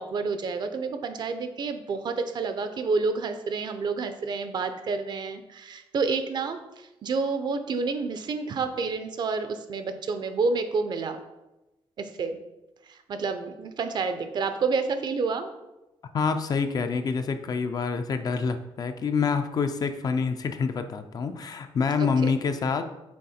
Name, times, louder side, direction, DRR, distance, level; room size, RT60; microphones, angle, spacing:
voice 1, 0.0-11.2 12.0-12.4 12.9-15.5 22.2-22.3, right 4 dB, 45° right, 9 dB, 0.5 m, -29 dB
voice 2, 16.1-22.9, left 5 dB, 40° left, 8 dB, 0.4 m, -27 dB
6.4 x 3.9 x 4.2 m, 0.99 s
cardioid pair, 150°, 10 cm